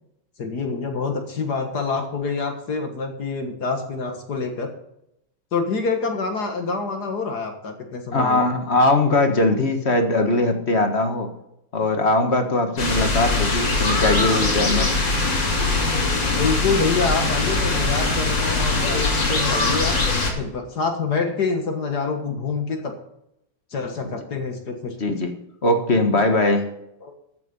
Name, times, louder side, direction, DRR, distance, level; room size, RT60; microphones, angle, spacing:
voice 1, 0.4-4.7 5.5-8.4 12.8-12.9 16.3-20.0 20.4-23.0 23.7-25.0 27.0-27.1, left 4 dB, 60° left, 4 dB, 2.1 m, -26 dB
voice 2, 8.1-11.3 11.7-14.9 24.1-24.2 25.0-25.3 25.6-26.7, left 2 dB, 35° left, 6 dB, 1.8 m, -20 dB
sound 1, 12.8-20.3, left 3 dB, 80° left, 3.6 m, -21 dB
14.5 x 8.4 x 5.5 m, 0.81 s
omnidirectional pair, 2.0 m